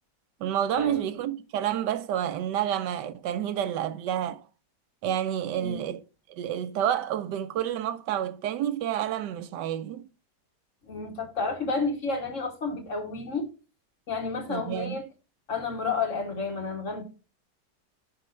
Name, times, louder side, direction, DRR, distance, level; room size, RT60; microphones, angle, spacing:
voice 1, 0.4-4.4 5.0-6.0 6.3-10.1 14.5-15.0, right 10 dB, 80° right, 1.2 m, -29 dB
voice 2, 10.8-13.5 14.1-15.1 15.5-17.0, left 4 dB, 50° left, 1.6 m, -31 dB
5.5 x 5.3 x 5.4 m
omnidirectional pair, 1.9 m